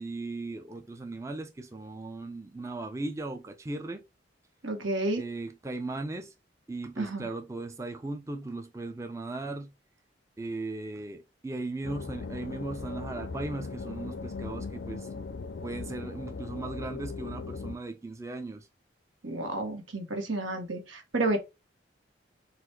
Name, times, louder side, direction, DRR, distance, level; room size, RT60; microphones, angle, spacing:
voice 1, 0.0-4.0 5.2-6.3 6.7-9.7 10.4-15.1 15.6-18.7, right 2 dB, 15° right, 0.4 m, -37 dB
voice 2, 4.6-5.2 7.0-7.3 19.2-21.4, right 2 dB, 90° right, 1.3 m, -31 dB
sound 1, 11.8-17.8, left 4 dB, 65° left, 0.4 m, -39 dB
4.0 x 2.5 x 4.3 m
head